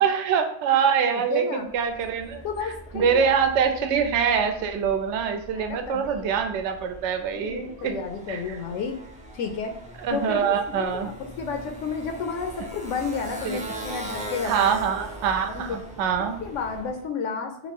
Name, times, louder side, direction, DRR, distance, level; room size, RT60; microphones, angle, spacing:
voice 1, 0.0-2.4 2.9-7.9 8.3-8.4 10.0-11.1 13.4-13.6 14.4-16.4, right 7 dB, 70° right, 6 dB, 0.9 m, -24 dB
voice 2, 1.1-1.7 2.4-3.3 5.5-6.4 7.3-9.0 9.3-9.7 10.1-14.5 15.5-15.9 16.2-17.7, left 5 dB, 80° left, 5 dB, 0.9 m, -32 dB
Motorcycle, 1.6-17.0, right 1 dB, 10° right, 0.4 m, -41 dB
3.1 x 2.9 x 4.4 m, 0.69 s
omnidirectional pair, 1.3 m